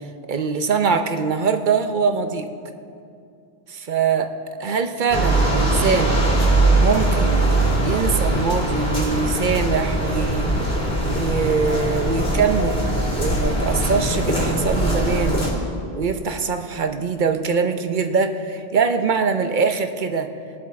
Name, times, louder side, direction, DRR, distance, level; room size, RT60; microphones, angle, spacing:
voice 1, 0.3-2.5 3.7-4.3 4.6-6.2 6.8-7.5 7.8-10.5 11.0-15.4 15.9-20.3, right 5 dB, 55° right, 7 dB, 0.8 m, -23 dB
sound 1, 5.1-15.5, right 1 dB, 70° left, 3.1 m, -21 dB
21.5 x 7.4 x 4.3 m, 2.5 s
omnidirectional pair, 1.1 m